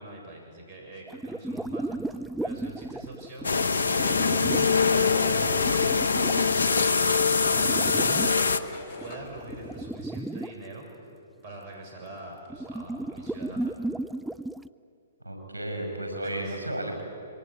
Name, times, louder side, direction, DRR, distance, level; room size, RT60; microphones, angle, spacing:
voice 1, 0.0-2.2 2.4-3.5 3.9-7.1 7.5-8.6 9.0-10.9 11.4-13.8 16.2-16.6, right 2 dB, 40° right, 1 dB, 7.6 m, -43 dB
sound 1, 1.1-4.8 5.4-8.4 9.0-10.5 12.5-14.7, right 1 dB, 5° right, 0.5 m, -35 dB
sound 2, 3.4-8.6, left 5 dB, 75° left, 1.0 m, -23 dB
sound 3, 3.9-9.9, left 3 dB, 45° left, 3.1 m, -45 dB
voice 2, 15.2-17.0, right 1 dB, 85° right, 3 dB, 6.3 m, -33 dB
26.5 x 23.5 x 8.2 m, 2.4 s
figure-of-eight pair, 125°, 0 cm